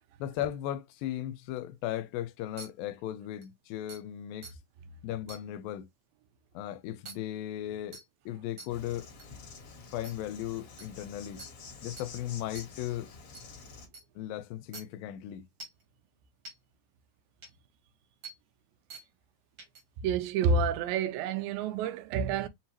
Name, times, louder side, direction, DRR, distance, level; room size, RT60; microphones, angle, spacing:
voice 1, 0.2-4.6 5.0-5.9 6.5-9.1 9.9-11.4 11.8-13.1 14.2-15.5, left 12 dB, 85° left, 2.2 m, -37 dB
sound 1, 2.6-2.7 3.4-3.5 3.9-4.0 4.4-4.5 5.3-5.4 7.1-7.2 7.9-8.0 8.6-8.7 9.2-9.3 10.0-10.1 10.8-10.9 11.4-11.5 12.0-12.1 12.6-12.7 13.3-13.4 13.9-14.0 14.7-14.8 15.6-15.8 16.5-16.6 17.4-17.5 18.2-18.3 18.9-19.0 19.6-19.8, right 3 dB, 50° right, 1.4 m, -45 dB
Insect, 8.7-13.9, left 4 dB, 50° left, 1.9 m, -48 dB
voice 2, 20.0-22.5, right 5 dB, 80° right, 2.4 m, -28 dB
5.8 x 2.8 x 2.9 m
omnidirectional pair, 4.2 m